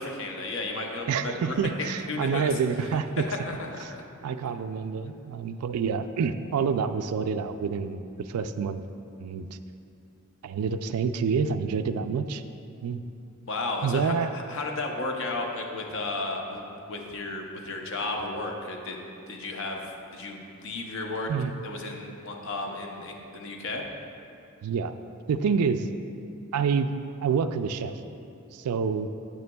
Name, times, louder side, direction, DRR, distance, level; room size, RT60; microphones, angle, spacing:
voice 1, 0.0-2.5 3.5-3.7 13.5-16.6 16.9-19.0 19.3-21.3 21.6-23.8, left 2 dB, 60° left, 1 dB, 0.7 m, -33 dB
voice 2, 1.1-3.3 4.2-8.8 9.2-9.5 10.4-12.4 12.8-13.0 13.8-14.3 21.3-21.5 24.6-24.9 25.3-25.9 26.5-26.9 27.2-27.9 28.5-29.1, right 6 dB, 80° right, 9 dB, 0.3 m, -27 dB
9.3 x 8.0 x 2.3 m, 2.6 s
head